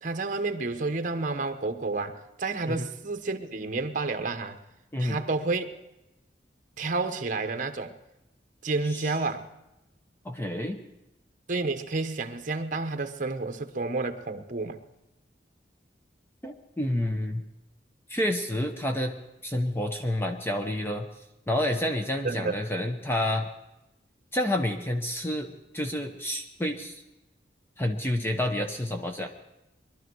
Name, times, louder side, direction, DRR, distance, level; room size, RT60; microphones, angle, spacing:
voice 1, 0.0-4.6 5.0-5.7 6.8-7.9 8.6-9.5 11.5-14.8 22.2-22.6, right 3 dB, 50° right, 8 dB, 1.0 m, -30 dB
voice 2, 10.2-10.8 16.4-17.4 18.1-19.2 19.4-21.1 21.5-23.5 24.3-27.0 27.8-29.3, left 1 dB, 15° left, 5 dB, 0.8 m, -29 dB
21.5 x 12.0 x 4.7 m, 0.94 s
head